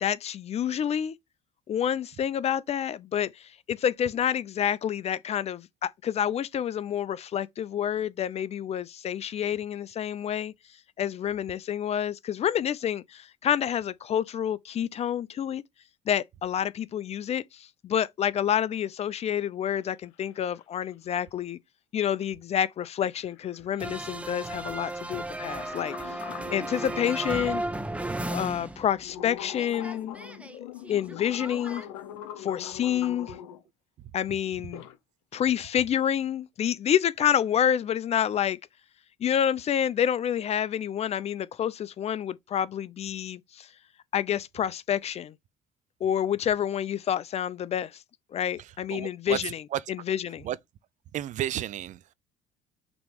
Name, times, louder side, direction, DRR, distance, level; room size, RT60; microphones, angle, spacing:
voice 1, 0.0-1.2 1.7-3.3 3.7-10.5 11.0-15.6 16.1-21.6 21.9-26.1 26.5-27.6 28.3-30.2 30.5-31.8 32.4-33.3 34.1-34.8 35.3-38.6 39.2-43.7 44.1-45.3 46.0-47.9 48.3-49.6 49.9-50.5, left 9 dB, 45° left, 0.6 m, -28 dB
sound 1, 19.8-19.9 20.1-20.9 22.6-22.7 23.0-27.5 28.0-28.1 28.8-33.6 34.5-35.0 35.3-35.6, left 11 dB, 80° left, 1.0 m, -43 dB
sound 2, 23.8-29.3 29.5-31.9, right 2 dB, 10° right, 1.2 m, -35 dB
voice 2, 48.6-49.4 49.7-49.8 50.4-50.6 51.1-52.1, right 12 dB, 55° right, 0.5 m, -32 dB
6.1 x 3.1 x 5.3 m
hypercardioid pair, 70°, 15 cm